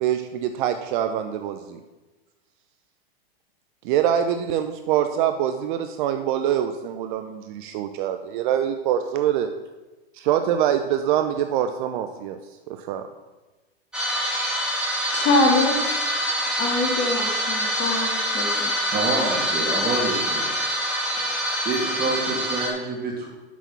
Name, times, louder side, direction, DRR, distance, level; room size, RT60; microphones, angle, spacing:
voice 1, 0.0-1.8 3.8-9.5 10.1-12.4 12.7-13.1, right 10 dB, 50° right, 8 dB, 0.6 m, -24 dB
sound 1, 13.9-22.7, equal, 5° right, 2.3 m, -25 dB
voice 2, 15.1-16.1 16.6-18.7, left 2 dB, 35° left, 1 dB, 2.1 m, -24 dB
voice 3, 18.7-20.5 21.1-23.3, right 3 dB, 30° right, -1 dB, 2.6 m, -28 dB
6.2 x 6.0 x 6.9 m, 1.2 s
hypercardioid pair, 120°, 31 cm